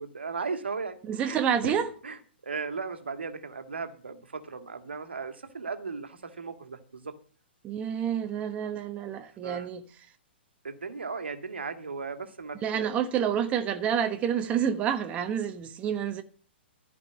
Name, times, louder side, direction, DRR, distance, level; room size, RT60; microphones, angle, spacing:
voice 1, 0.0-1.7 2.0-7.2 9.4-9.7 10.6-12.9, right 4 dB, 70° right, 1.8 m, -36 dB
voice 2, 1.1-1.9 7.6-9.8 12.6-16.2, right 8 dB, 20° right, 1.1 m, -28 dB
14.5 x 5.4 x 8.8 m
figure-of-eight pair, 115°, 6 cm